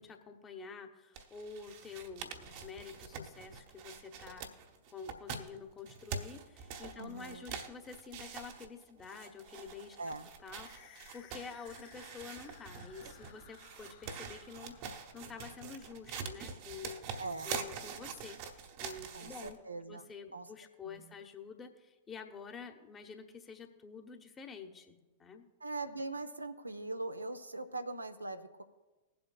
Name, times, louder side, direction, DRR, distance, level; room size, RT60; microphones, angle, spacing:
voice 1, 0.0-4.5 4.9-10.0 10.4-17.2 17.4-19.6 19.9-25.4, left 5 dB, 20° left, 5 dB, 1.1 m, -49 dB
sound 1, 1.2-19.6, right 6 dB, 50° right, 1.0 m, -45 dB
voice 2, 7.0-7.5 10.0-10.3 17.2-17.6 19.1-20.0 20.3-20.5 20.8-21.1 25.6-28.6, right 2 dB, 85° right, 8 dB, 0.6 m, -41 dB
sound 2, 10.6-15.5, left 8 dB, 50° left, 1.7 m, -59 dB
20.5 x 7.7 x 2.3 m, 1.2 s
figure-of-eight pair, 95°, 0 cm